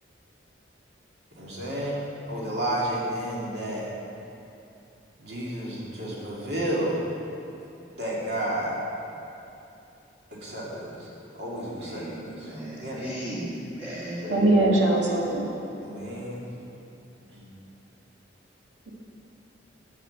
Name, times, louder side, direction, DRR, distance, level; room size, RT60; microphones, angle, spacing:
voice 1, 1.3-3.9 5.2-7.0 8.0-8.8 10.3-13.0 14.2-14.3 15.8-16.5 17.3-17.5, right 1 dB, 60° right, -5 dB, 2.5 m, -32 dB
voice 2, 11.9-14.4, right 1 dB, 10° right, -9 dB, 1.3 m, -36 dB
voice 3, 14.3-15.5, right 2 dB, 80° right, -3 dB, 2.1 m, -21 dB
9.2 x 6.7 x 7.8 m, 2.8 s
head